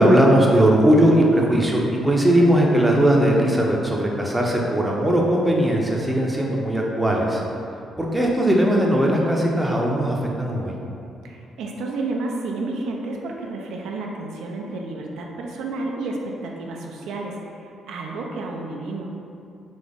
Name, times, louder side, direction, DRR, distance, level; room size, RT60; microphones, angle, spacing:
voice 1, 0.0-7.4 8.0-10.7, right 1 dB, 10° right, -2 dB, 0.7 m, -19 dB
voice 2, 11.2-19.1, right 2 dB, 80° right, 0 dB, 0.4 m, -31 dB
4.0 x 2.9 x 3.5 m, 2.5 s
cardioid pair, 90°, 0 cm